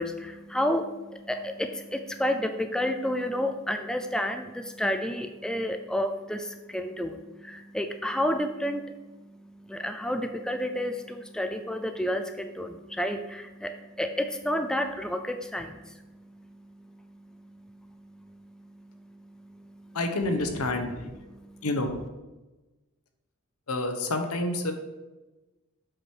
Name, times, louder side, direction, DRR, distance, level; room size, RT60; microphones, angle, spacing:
voice 1, 0.0-20.0 20.9-21.7, left 1 dB, 5° left, 7 dB, 0.3 m, -31 dB
voice 2, 19.9-21.0 21.6-21.9 23.7-24.7, left 2 dB, 75° left, 6 dB, 1.0 m, -28 dB
7.7 x 4.8 x 4.6 m, 1.1 s
head